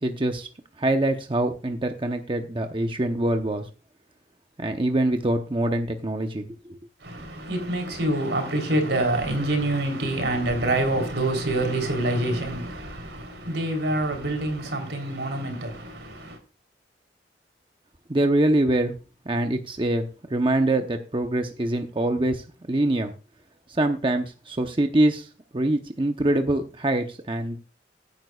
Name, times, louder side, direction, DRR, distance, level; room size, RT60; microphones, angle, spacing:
voice 1, 0.0-0.5 0.8-3.6 4.6-6.5 18.1-18.9 19.3-23.1 23.7-25.3 25.5-27.6, right 1 dB, 30° right, 0.8 m, -24 dB
voice 2, 7.0-16.4, right 1 dB, 85° right, 3.5 m, -26 dB
16.0 x 9.2 x 2.4 m
head